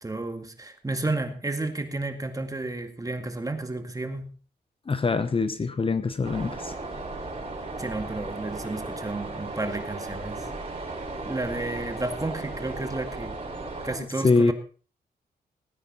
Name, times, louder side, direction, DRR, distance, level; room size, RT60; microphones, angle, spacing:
voice 1, 0.0-4.3 7.8-10.5 11.2-13.4 13.8-14.5, right 2 dB, 20° right, 7 dB, 2.0 m, -32 dB
voice 2, 4.9-6.7 14.2-14.5, left 4 dB, 30° left, 11 dB, 0.9 m, -23 dB
sound 1, 6.2-14.0, right 2 dB, 35° right, 6.3 m, -36 dB
18.5 x 9.6 x 4.1 m, 0.39 s
cardioid pair, 90°, 17 cm